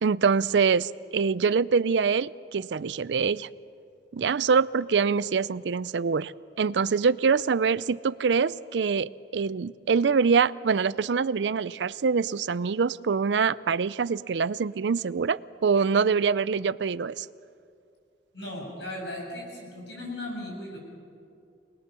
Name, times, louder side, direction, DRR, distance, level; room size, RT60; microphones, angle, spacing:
voice 1, 0.0-3.5 4.1-6.3 6.6-17.3, right 5 dB, 85° right, 19 dB, 0.5 m, -24 dB
voice 2, 18.3-20.8, left 1 dB, 85° left, -1 dB, 7.8 m, -37 dB
26.5 x 20.5 x 6.9 m, 2.4 s
head